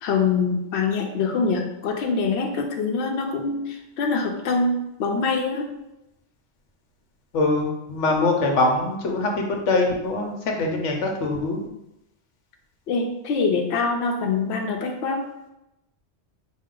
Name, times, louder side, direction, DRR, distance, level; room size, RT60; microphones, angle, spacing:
voice 1, 0.0-5.7 12.9-15.2, left 4 dB, 70° left, 2 dB, 0.8 m, -24 dB
voice 2, 7.3-11.7, left 2 dB, 90° left, 2 dB, 1.1 m, -23 dB
5.2 x 2.3 x 3.7 m, 0.89 s
omnidirectional pair, 1.2 m